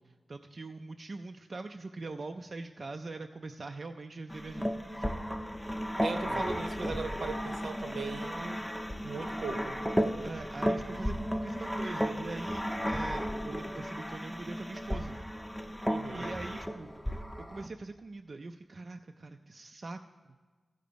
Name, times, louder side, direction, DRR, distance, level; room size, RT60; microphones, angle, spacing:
voice 1, 0.3-5.2 6.3-6.5 10.2-15.2 16.1-16.9 17.5-20.0, right 3 dB, 45° right, 6 dB, 0.4 m, -42 dB
sound 1, 4.3-17.7, equal, 5° left, 0.6 m, -34 dB
voice 2, 6.0-8.6 9.0-9.8 15.9-16.3, right 3 dB, 75° right, 6 dB, 0.9 m, -38 dB
14.5 x 5.1 x 6.8 m, 1.4 s
wide cardioid pair, 105°, 0 cm